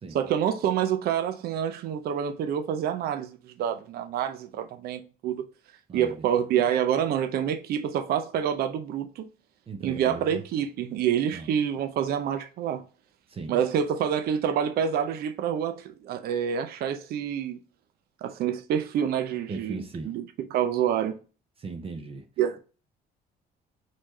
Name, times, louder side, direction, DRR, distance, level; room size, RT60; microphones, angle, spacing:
voice 1, 0.1-5.5 5.9-9.3 9.8-12.8 13.5-17.6 18.2-20.2 20.5-21.2 22.4-22.6, right 9 dB, 65° right, 0.6 m, -27 dB
voice 2, 5.9-6.3 9.7-10.4 11.3-11.5 13.3-13.6 19.5-20.1 21.6-22.3, right 4 dB, 35° right, 0.8 m, -38 dB
4.2 x 3.2 x 4.0 m
cardioid pair, 110°, 17 cm